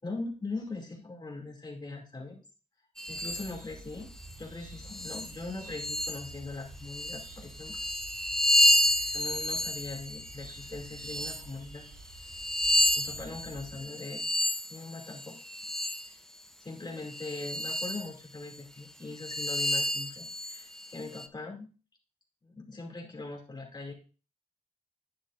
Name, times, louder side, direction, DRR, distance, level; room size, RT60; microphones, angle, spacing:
voice 1, 0.0-2.4 3.1-7.8 9.1-11.9 12.9-14.2 14.7-15.4 15.9-16.2 16.6-21.7 22.4-23.9, left 3 dB, 30° left, 0 dB, 2.3 m, -41 dB
sound 1, 3.0-3.5 4.2-4.3 4.8-6.4 6.8-11.5 12.1-16.1 17.0-18.1 18.5-18.6 19.2-21.3, left 1 dB, 5° left, 0.6 m, -30 dB
sound 2, 3.1-13.8, right 2 dB, 90° right, 4.1 m, -50 dB
10.5 x 9.8 x 2.5 m, 0.35 s
wide cardioid pair, 120°, 15 cm